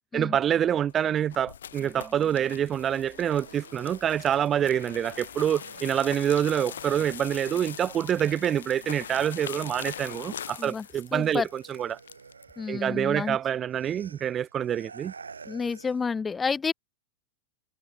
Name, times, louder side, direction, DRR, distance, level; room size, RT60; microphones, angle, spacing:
voice 1, 0.1-12.0 12.7-15.1, right 9 dB, 25° right, 1.0 m, -26 dB
sound 1, 0.7-12.5, left 9 dB, 65° left, 3.9 m, -42 dB
sound 2, 1.8-10.5, right 2 dB, 5° right, 7.0 m, -58 dB
sound 3, 3.1-9.3 9.6-16.1, right 5 dB, 75° right, 3.3 m, -51 dB
voice 2, 11.1-11.5 12.6-13.4 15.5-16.7, left 5 dB, 15° left, 0.4 m, -29 dB
figure-of-eight pair, 90°, 0 cm